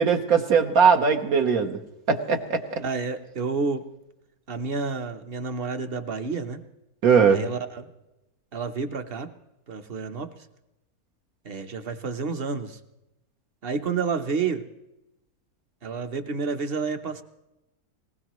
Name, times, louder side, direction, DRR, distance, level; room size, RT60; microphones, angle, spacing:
voice 1, 0.0-1.8 2.1-2.8 7.0-7.4, right 6 dB, 70° right, 4 dB, 1.4 m, -20 dB
voice 2, 2.8-3.9 4.5-6.6 7.3-7.9 8.5-9.3 9.7-10.3 11.4-12.8 13.6-14.6 15.8-17.2, right 4 dB, 45° right, 9 dB, 1.0 m, -30 dB
20.0 x 19.0 x 3.1 m, 0.93 s
omnidirectional pair, 1.6 m